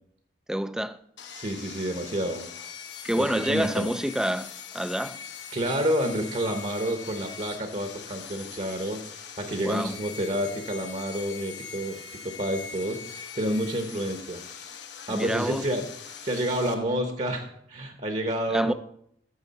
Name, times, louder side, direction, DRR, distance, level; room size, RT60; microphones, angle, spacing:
voice 1, 0.5-1.0 3.0-5.2 9.6-10.0 15.1-15.7 18.5-18.7, equal, 5° right, 0.3 m, -28 dB
Sawing, 1.2-16.7, left 7 dB, 90° left, 1.0 m, -42 dB
voice 2, 1.3-2.4 3.2-3.9 5.5-14.4 15.1-15.8 16.2-18.7, equal, 45° right, 1.0 m, -29 dB
12.5 x 6.9 x 4.1 m
head